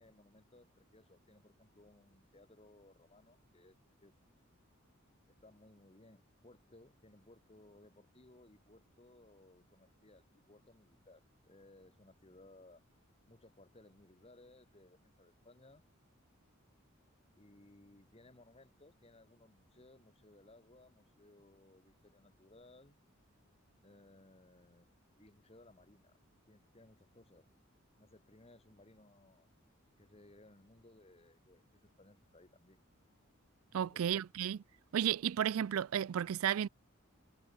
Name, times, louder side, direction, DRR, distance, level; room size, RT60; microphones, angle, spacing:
voice 1, 0.0-4.1 5.3-12.8 13.3-15.8 17.4-23.0 23.8-26.2 26.5-27.5 28.0-29.5 30.0-32.8 33.7-34.0, left 2 dB, 30° left, 1.6 m, -62 dB
voice 2, 33.7-34.6 34.9-36.7, right 9 dB, 90° right, 0.4 m, -33 dB
head